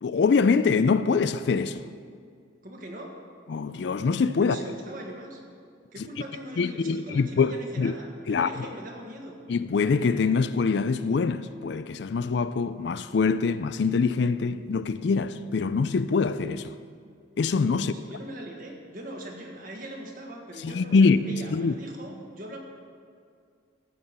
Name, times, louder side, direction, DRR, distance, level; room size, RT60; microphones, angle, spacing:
voice 1, 0.0-1.8 3.5-4.6 6.0-6.1 6.6-7.9 8.3-8.7 9.5-16.8 17.4-17.9 20.6-21.2 21.5-21.7, left 4 dB, 60° left, 0.4 m, -24 dB
voice 2, 2.6-3.1 4.4-5.4 5.9-9.4 17.8-22.6, right 1 dB, 45° right, 1.7 m, -41 dB
14.5 x 5.6 x 8.1 m
head